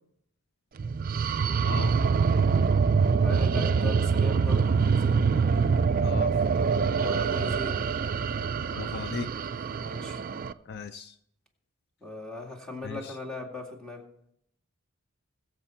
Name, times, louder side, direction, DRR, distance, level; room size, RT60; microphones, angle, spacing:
sound 1, 0.8-10.5, right 5 dB, 40° right, 0.4 m, -25 dB
voice 1, 3.2-5.2 6.9-7.7 9.8-10.2 12.0-14.0, left 2 dB, 5° left, -1 dB, 2.2 m, -38 dB
voice 2, 6.0-6.3 8.7-9.3 10.7-11.1 12.8-13.2, left 5 dB, 50° left, 10 dB, 0.5 m, -36 dB
21.5 x 7.5 x 4.4 m, 0.74 s
head